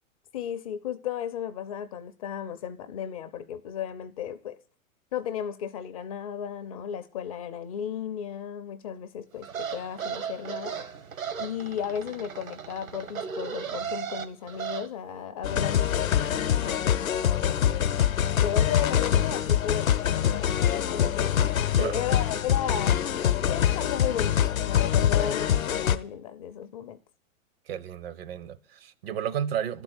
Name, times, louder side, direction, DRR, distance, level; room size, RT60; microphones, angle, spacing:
voice 1, 0.3-4.6 5.1-10.8 11.4-17.9 18.4-20.5 20.7-21.4 21.8-27.0, left 9 dB, 25° left, 0.4 m, -35 dB
sound 1, 9.4-14.9, right 7 dB, 75° right, 1.2 m, -36 dB
sound 2, 15.4-26.0, left 10 dB, 75° left, 0.8 m, -24 dB
voice 2, 21.7-22.0 27.7-29.8, right 9 dB, 45° right, 0.6 m, -32 dB
11.5 x 4.5 x 7.8 m
figure-of-eight pair, 110°, 42 cm